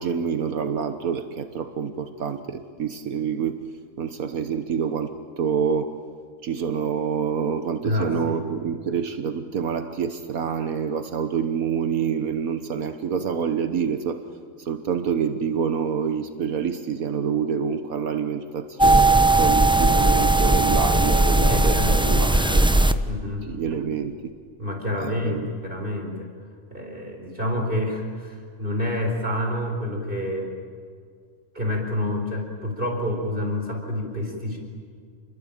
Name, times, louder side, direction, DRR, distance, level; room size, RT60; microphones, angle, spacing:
voice 1, 0.0-3.6 4.0-6.0 6.4-14.2 14.6-22.6 23.4-24.1 25.0-25.5, right 7 dB, 75° right, 8 dB, 1.6 m, -27 dB
voice 2, 7.8-8.4 21.4-23.4 24.6-26.3 26.7-30.5 31.5-34.6, left 1 dB, 35° right, 2 dB, 4.9 m, -28 dB
sound 1, 18.8-22.9, right 2 dB, 5° right, 0.6 m, -18 dB
29.5 x 22.0 x 8.9 m, 2.1 s
omnidirectional pair, 1.5 m